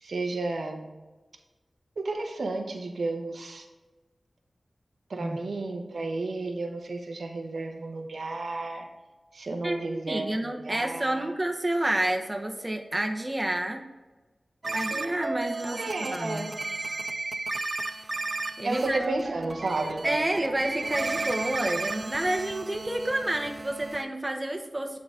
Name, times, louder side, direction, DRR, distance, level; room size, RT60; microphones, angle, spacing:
voice 1, 0.0-0.9 2.0-3.6 5.1-8.8 9.3-11.3 15.7-16.5 18.6-20.0, right 2 dB, 85° right, 3 dB, 0.9 m, -32 dB
voice 2, 9.6-13.9 14.7-16.5 18.0-18.1 18.6-19.0 20.0-25.0, right 1 dB, 25° right, 3 dB, 0.9 m, -29 dB
sound 1, 14.6-24.0, right 3 dB, 50° right, 0.4 m, -34 dB
9.1 x 3.9 x 3.7 m, 1.2 s
wide cardioid pair, 70°, 0 cm